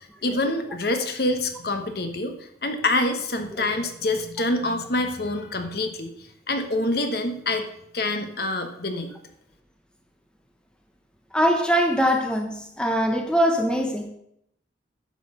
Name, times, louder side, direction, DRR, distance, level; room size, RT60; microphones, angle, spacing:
voice 1, 0.2-2.3 2.6-6.1 6.5-7.7 7.9-9.1, left 2 dB, 55° left, 6 dB, 1.1 m, -26 dB
voice 2, 11.3-14.1, equal, 5° left, 3 dB, 1.0 m, -22 dB
10.0 x 6.2 x 6.7 m, 0.73 s
head